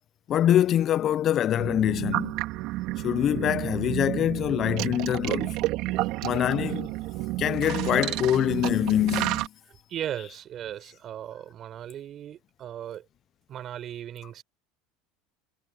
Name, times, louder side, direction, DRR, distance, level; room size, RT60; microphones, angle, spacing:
voice 1, 0.3-2.3 3.0-5.6 6.2-6.9 7.4-9.5, left 11 dB, 40° left, 0.5 m, -24 dB
sound 1, 1.6-9.5, right 18 dB, 60° right, 3.1 m, -30 dB
voice 2, 9.9-13.0 13.5-14.4, right 10 dB, 40° right, 5.0 m, -37 dB
supercardioid pair, 110°, 0 cm